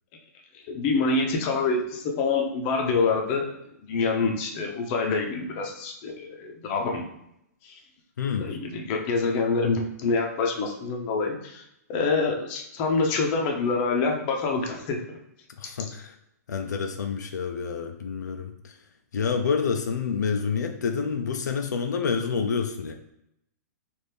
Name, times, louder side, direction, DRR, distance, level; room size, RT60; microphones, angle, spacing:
voice 1, 0.5-3.6 3.9-7.0 7.6-7.8 8.4-11.6 11.9-15.2, left 4 dB, 40° left, 2 dB, 0.7 m, -26 dB
voice 2, 8.2-8.5 15.6-16.2 16.5-18.8 19.1-22.9, left 6 dB, 85° left, 4 dB, 0.5 m, -28 dB
4.2 x 2.6 x 3.4 m, 0.79 s
hypercardioid pair, 135°, 9 cm